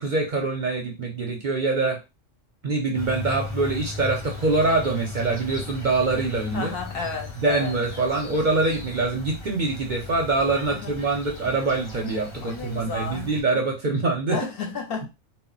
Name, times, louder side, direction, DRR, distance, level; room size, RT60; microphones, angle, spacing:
voice 1, 0.0-2.0 2.6-6.7 7.4-14.4, right 3 dB, 55° right, 0.6 m, -24 dB
sound 1, 2.9-13.4, left 3 dB, 30° left, 0.7 m, -37 dB
voice 2, 6.5-7.8 10.7-11.0 12.4-13.4 14.3-15.1, left 5 dB, 60° left, 0.7 m, -32 dB
2.1 x 2.0 x 3.8 m
omnidirectional pair, 1.2 m